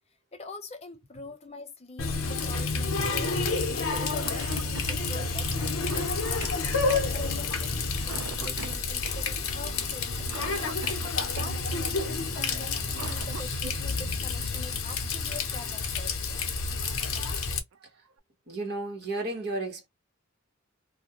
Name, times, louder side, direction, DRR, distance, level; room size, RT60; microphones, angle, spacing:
voice 1, 0.3-5.8 6.3-10.8 11.3-16.4, left 2 dB, 30° left, 0.5 m, -44 dB
Water tap faucet, 2.0-17.6, left 4 dB, 80° left, 0.6 m, -29 dB
Cough, 3.9-4.0 4.2-11.6 12.7-13.7 15.4-15.5 16.5-16.8 17.2-17.3 17.7-18.2, right 6 dB, 75° right, 0.4 m, -43 dB
voice 2, 18.5-19.9, right 2 dB, 55° right, 1.0 m, -33 dB
2.4 x 2.1 x 2.8 m
head